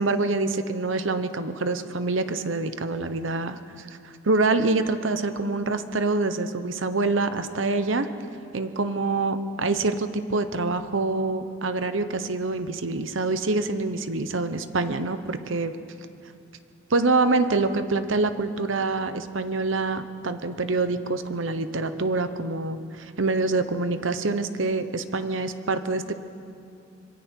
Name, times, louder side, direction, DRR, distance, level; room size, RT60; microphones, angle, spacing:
voice 1, 0.0-8.1 8.5-15.7 16.9-26.1, right 3 dB, 80° right, 10 dB, 1.0 m, -26 dB
26.0 x 22.5 x 4.6 m, 2.5 s
head